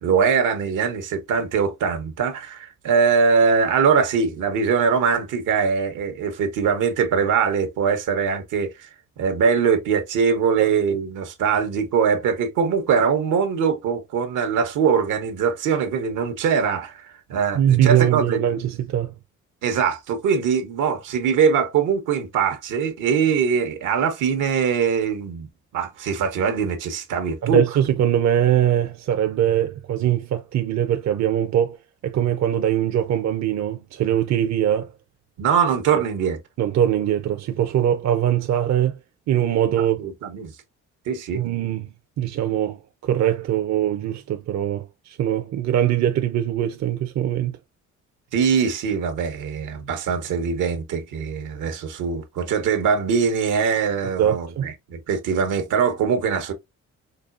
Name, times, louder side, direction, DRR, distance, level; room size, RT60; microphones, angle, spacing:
voice 1, 0.0-8.7 9.2-18.4 19.6-27.6 35.4-36.4 39.8-40.5 41.1-41.4 48.3-56.5, right 6 dB, 85° right, 1.2 m, -22 dB
voice 2, 17.5-19.1 27.4-31.8 32.0-34.9 36.6-39.0 39.3-40.1 41.3-41.9 42.2-47.6 54.2-54.7, right 10 dB, 60° right, 0.7 m, -22 dB
5.3 x 2.3 x 2.5 m
cardioid pair, 90°, 30 cm